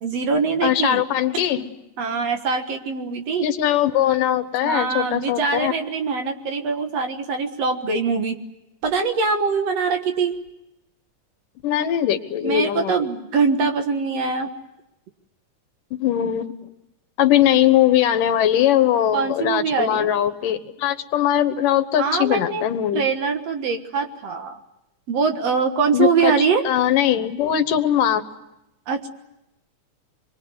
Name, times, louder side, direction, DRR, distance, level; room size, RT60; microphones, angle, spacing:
voice 1, 0.0-1.0 2.0-3.5 4.6-8.4 8.8-10.4 12.4-14.5 19.1-20.1 22.0-22.6 22.9-24.6 25.1-26.6 28.9-29.1, right 5 dB, 55° right, 6 dB, 2.4 m, -23 dB
voice 2, 0.6-1.6 3.4-5.7 11.6-13.0 15.9-16.5 17.2-23.1 25.9-26.3 26.6-28.2, left 11 dB, 80° left, 10 dB, 2.8 m, -20 dB
25.0 x 23.0 x 9.6 m, 0.89 s
omnidirectional pair, 3.8 m